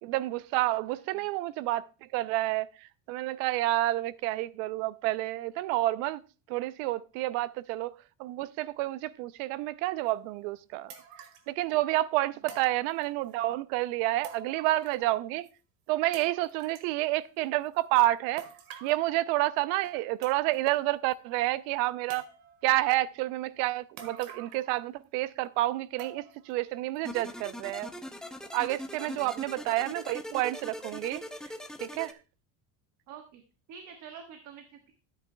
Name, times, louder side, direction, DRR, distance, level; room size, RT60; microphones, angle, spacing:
voice 1, 0.0-6.2 6.5-7.9 8.2-10.9 11.5-15.5 15.9-18.5 18.8-22.2 22.6-27.9 28.5-31.2 31.8-32.2, right 16 dB, 70° right, 0.6 m, -29 dB
sound 1, 10.1-10.2 10.9-11.5 12.5-13.3 14.2-15.2 15.4-15.5 16.1-16.9 18.4-19.0 19.8-19.9 20.2-20.8 21.1-21.2 22.1-22.7 24.0-24.7 25.0-25.1 26.0-26.5 27.0-27.1 27.7-27.8, right 7 dB, 90° right, 1.9 m, -47 dB
sound 2, 27.1-32.1, left 1 dB, ahead, 0.4 m, -41 dB
voice 2, 29.0-29.4 33.1-33.4 33.7-34.9, right 7 dB, 50° right, 1.4 m, -47 dB
13.0 x 9.0 x 2.2 m
cardioid pair, 160°, 38 cm